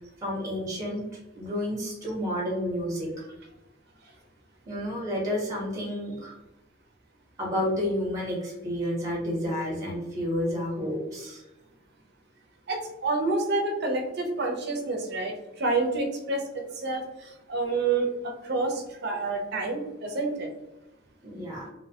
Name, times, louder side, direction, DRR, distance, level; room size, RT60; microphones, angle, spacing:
voice 1, 0.2-1.0 1.3-3.1 4.7-6.3 7.4-11.4 18.2-18.3 21.2-21.6, left 1 dB, 15° right, -4 dB, 0.7 m, -30 dB
voice 2, 12.7-20.5, right 3 dB, 50° right, 3 dB, 0.5 m, -28 dB
2.9 x 2.0 x 2.7 m, 0.97 s
head